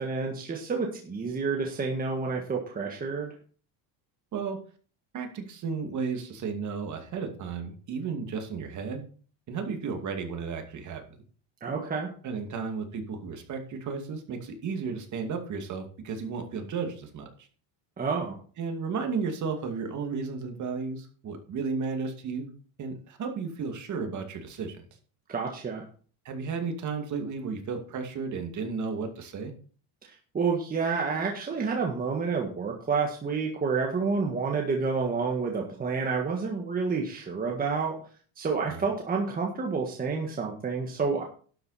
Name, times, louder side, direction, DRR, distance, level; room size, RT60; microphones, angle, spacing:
voice 1, 0.0-3.3 11.6-12.1 18.0-18.4 25.3-25.8 30.0-38.0 38.4-41.2, right 4 dB, 20° right, 1 dB, 1.5 m, -29 dB
voice 2, 5.1-9.1 9.5-11.0 12.2-17.5 18.6-22.5 22.8-24.9 26.2-29.5 38.7-38.9, right 5 dB, 40° right, 4 dB, 2.4 m, -33 dB
11.5 x 7.9 x 4.2 m, 0.43 s
cardioid pair, 155°, 46 cm